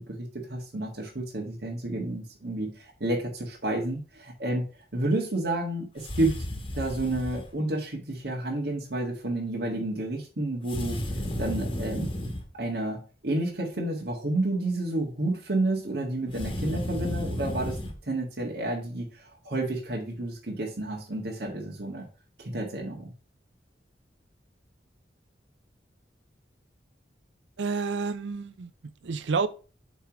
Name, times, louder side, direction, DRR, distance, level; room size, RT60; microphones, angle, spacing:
voice 1, 0.0-4.6 4.9-6.3 6.7-11.0 11.4-12.1 12.6-17.8 18.1-22.1 22.4-23.1, right 2 dB, 65° right, 1.7 m, -30 dB
sound 1, 6.0-7.5 10.7-12.5 16.3-17.9, left 1 dB, 30° left, 1.3 m, -33 dB
voice 2, 27.6-28.7 29.0-29.5, right 4 dB, 90° right, 0.5 m, -29 dB
8.0 x 3.3 x 5.9 m
head